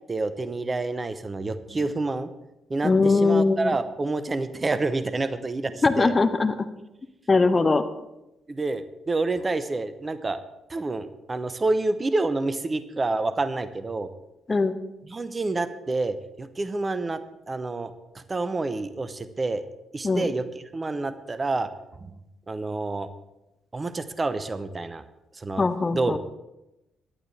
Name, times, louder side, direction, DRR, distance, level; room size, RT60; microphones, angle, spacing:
voice 1, 0.1-2.3 2.7-6.1 8.5-10.4 10.7-14.1 15.0-19.6 19.9-21.7 22.0-22.2 22.5-23.1 23.7-25.0 25.3-25.6 25.9-26.2, right 3 dB, 25° right, 13 dB, 0.8 m, -28 dB
voice 2, 2.8-3.7 5.8-6.5 7.3-7.8 14.5-14.7 20.0-20.2 25.6-26.2, left 3 dB, 30° left, 9 dB, 0.9 m, -21 dB
18.0 x 11.5 x 3.3 m, 0.93 s
figure-of-eight pair, 40°, 0 cm